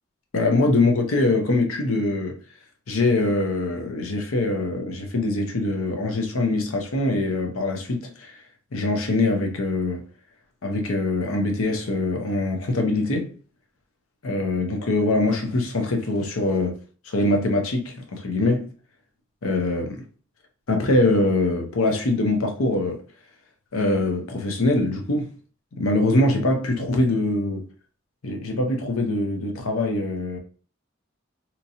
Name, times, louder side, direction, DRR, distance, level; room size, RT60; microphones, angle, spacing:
voice 1, 0.3-2.4 2.9-8.4 8.7-10.1 10.6-13.3 14.2-16.8 17.0-18.7 19.4-20.0 20.7-23.0 23.7-25.3 25.8-27.7 28.2-30.4, left 2 dB, 85° left, 0.7 m, -23 dB
2.9 x 2.7 x 2.6 m
head